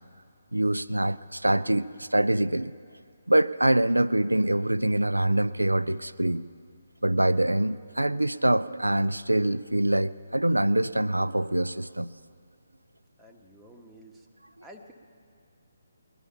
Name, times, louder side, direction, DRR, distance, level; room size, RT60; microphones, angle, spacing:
voice 1, 0.5-2.7 3.3-6.4 7.0-12.1, right 1 dB, 85° right, 15 dB, 0.4 m, -24 dB
voice 2, 13.2-14.3 14.6-14.9, equal, 5° right, -1 dB, 1.2 m, -50 dB
20.5 x 12.0 x 5.7 m, 2.4 s
figure-of-eight pair, 140°, 0 cm